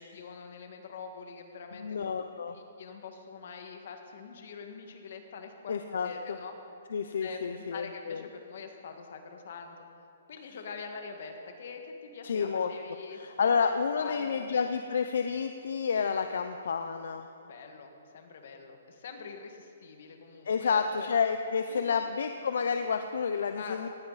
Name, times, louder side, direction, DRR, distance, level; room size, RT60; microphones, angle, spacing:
voice 1, 0.0-2.1 2.5-5.7 6.0-6.6 7.2-9.8 10.3-13.5 14.0-14.6 17.4-21.1 21.6-22.2 23.5-23.9, left 5 dB, 55° left, 5 dB, 1.8 m, -44 dB
voice 2, 1.7-2.5 5.7-6.4 6.9-8.2 12.2-12.7 13.1-17.3 20.5-23.9, left 6 dB, 70° left, 8 dB, 0.7 m, -30 dB
18.5 x 14.5 x 4.2 m, 2.6 s
hypercardioid pair, 170°, 0 cm